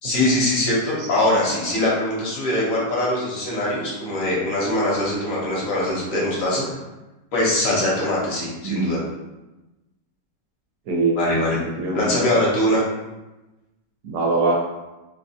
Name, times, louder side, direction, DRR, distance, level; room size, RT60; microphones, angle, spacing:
voice 1, 0.0-6.7 7.3-9.0 11.1-11.6 11.9-12.8, left 1 dB, 55° left, -5 dB, 1.2 m, -22 dB
voice 2, 10.9-11.2 11.5-12.1 14.0-14.5, right 3 dB, 65° right, -1 dB, 1.1 m, -22 dB
3.5 x 2.9 x 2.7 m, 1.0 s
omnidirectional pair, 1.9 m